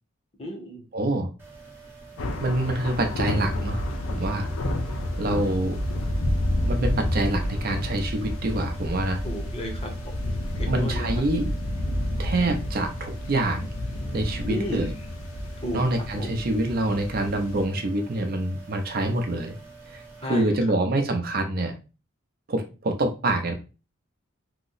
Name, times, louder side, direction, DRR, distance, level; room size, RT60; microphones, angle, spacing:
voice 1, 0.4-0.8 9.2-10.1 10.6-11.1 14.4-14.9 15.6-15.8 16.1-16.3 20.2-20.6, equal, 30° left, 3 dB, 0.7 m, -33 dB
voice 2, 0.9-1.3 2.4-3.8 4.1-4.5 5.2-5.8 6.6-9.2 10.7-11.5 12.2-13.7 14.1-14.9 15.7-19.6 19.9-21.8 22.5-23.5, right 1 dB, 45° right, 5 dB, 0.5 m, -26 dB
sound 1, 1.4-20.4, right 3 dB, 10° right, 0.8 m, -46 dB
sound 2, 2.2-17.6, left 1 dB, 80° left, 0.6 m, -30 dB
2.8 x 2.0 x 3.8 m, 0.32 s
head